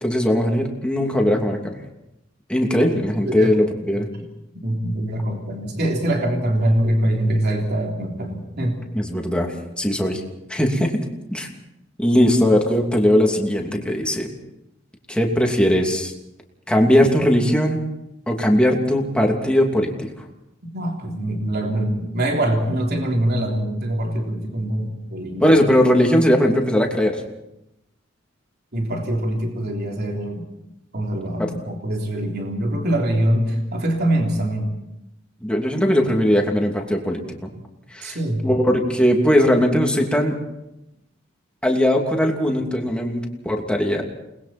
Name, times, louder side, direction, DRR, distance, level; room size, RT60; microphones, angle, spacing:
voice 1, 0.0-1.8 2.5-4.1 8.9-10.2 10.5-11.0 11.3-11.5 12.0-14.3 15.1-16.1 16.7-17.8 18.3-20.1 25.4-27.1 31.4-31.5 35.4-37.5 37.9-38.2 38.4-40.4 41.6-44.0, equal, 5° left, 1 dB, 2.8 m, -19 dB
voice 2, 3.2-3.6 4.5-8.8 20.6-25.5 28.7-30.4 30.9-34.7 38.0-38.5, right 1 dB, 55° right, 1 dB, 3.4 m, -23 dB
29.0 x 20.5 x 4.4 m, 0.88 s
head